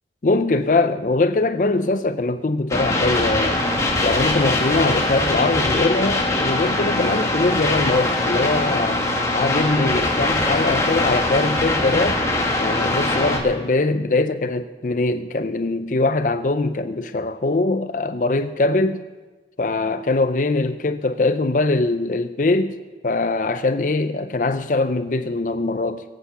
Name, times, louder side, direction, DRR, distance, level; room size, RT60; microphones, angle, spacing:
voice 1, 0.2-3.7 4.0-9.0 9.3-12.2 12.6-19.0 19.6-22.8 23.0-26.0, left 2 dB, 45° left, 0.5 m, -22 dB
sound 1, 2.7-13.4, left 2 dB, 15° left, 1.7 m, -22 dB
22.5 x 8.2 x 5.7 m
head